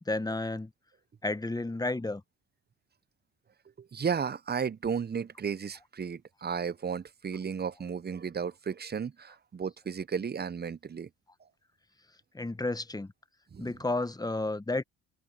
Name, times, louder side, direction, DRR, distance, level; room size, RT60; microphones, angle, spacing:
voice 1, 0.1-0.7 1.2-2.2 12.3-13.1 13.6-14.8, left 2 dB, 10° left, 1.3 m, -31 dB
voice 2, 3.8-11.1 13.5-13.7, right 6 dB, 25° right, 0.8 m, -34 dB
open air
hypercardioid pair, 55°, 36 cm